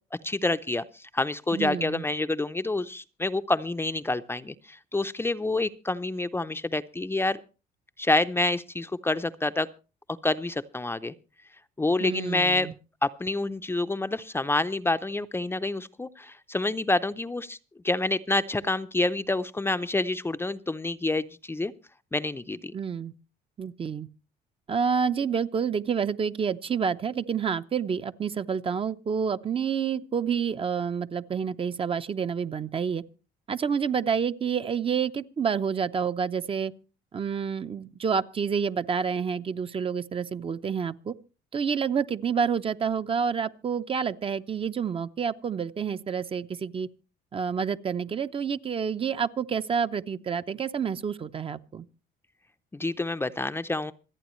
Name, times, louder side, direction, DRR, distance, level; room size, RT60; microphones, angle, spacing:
voice 1, 0.2-7.4 8.0-9.7 10.2-11.1 11.8-12.7 13.0-17.6 17.8-21.7 22.1-22.7 52.7-53.9, left 2 dB, 15° left, 0.6 m, -28 dB
voice 2, 1.5-2.0 12.0-12.7 22.7-23.1 23.6-24.1 24.7-33.0 33.5-36.7 37.1-41.1 41.5-46.9 47.3-51.8, right 6 dB, 35° right, 0.8 m, -28 dB
26.5 x 8.9 x 3.1 m
cardioid pair, 110°, 17 cm